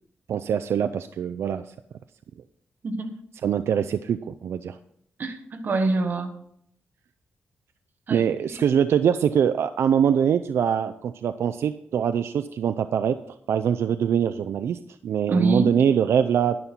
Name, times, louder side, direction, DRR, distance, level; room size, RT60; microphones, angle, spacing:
voice 1, 0.3-1.7 3.4-4.8 8.1-13.2 13.5-16.6, right 8 dB, 80° right, 10 dB, 0.4 m, -23 dB
voice 2, 2.8-3.2 5.2-6.3 8.1-8.2 8.5-8.6 15.3-15.8, right 3 dB, 50° right, 7 dB, 1.3 m, -25 dB
10.5 x 10.5 x 4.4 m, 0.70 s
wide cardioid pair, 135°, 4 cm